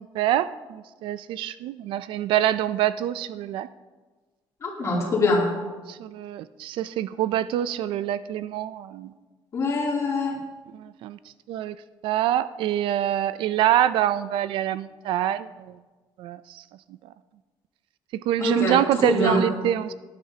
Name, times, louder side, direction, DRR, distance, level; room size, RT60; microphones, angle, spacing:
voice 1, 0.0-3.7 4.8-5.1 5.9-9.1 10.7-11.2 11.5-11.8 12.0-15.8 16.2-16.6 17.0-17.1 18.1-19.9, right 12 dB, 75° right, 15 dB, 0.4 m, -25 dB
voice 2, 4.6-5.5 9.5-10.4 18.4-19.4, left 2 dB, 35° left, -3 dB, 2.9 m, -24 dB
18.0 x 10.5 x 2.8 m, 1.3 s
cardioid pair, 165°, 9 cm